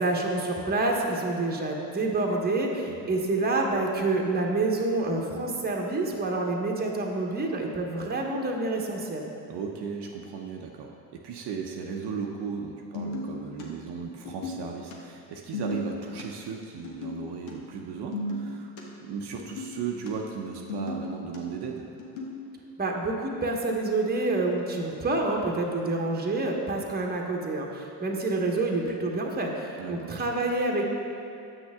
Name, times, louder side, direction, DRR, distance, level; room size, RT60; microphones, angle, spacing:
voice 1, 0.0-9.2 22.8-30.8, right 2 dB, 20° right, 0 dB, 1.1 m, -27 dB
voice 2, 9.5-18.7 19.0-21.9 29.8-30.2, right 6 dB, 50° right, 1 dB, 0.8 m, -36 dB
sound 1, 12.9-13.7 14.1-14.9 15.4-16.2 16.8-17.2 17.5-17.6 17.8-18.8 19.4-20.1 20.6-21.4 22.0-22.4, left 1 dB, 65° left, 1.4 m, -34 dB
7.9 x 6.2 x 3.6 m, 2.6 s
hypercardioid pair, 65°, 50 cm